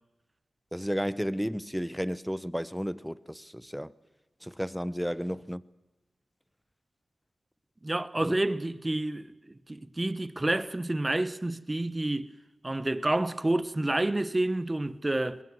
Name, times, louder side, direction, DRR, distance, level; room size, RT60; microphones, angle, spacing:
voice 1, 0.7-3.9 4.4-5.6 8.2-8.4, equal, ahead, 0.9 m, -33 dB
voice 2, 7.8-9.3 9.7-12.3 12.6-15.4, right 1 dB, 25° right, 1.3 m, -29 dB
23.0 x 21.0 x 7.6 m
cardioid pair, 40°, 0 cm